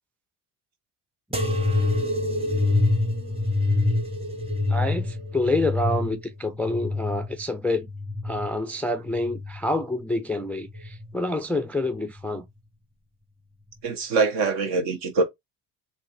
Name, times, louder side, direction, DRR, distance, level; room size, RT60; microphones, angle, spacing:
sound 1, 1.3-8.5 9.1-9.8 10.6-11.1 12.1-12.2, left 2 dB, 10° right, 0.9 m, -26 dB
voice 1, 4.7-7.9 8.2-12.5, left 2 dB, 5° left, 0.3 m, -27 dB
voice 2, 13.8-15.2, right 4 dB, 65° right, 1.2 m, -23 dB
3.8 x 2.5 x 2.4 m
hypercardioid pair, 65°, 46 cm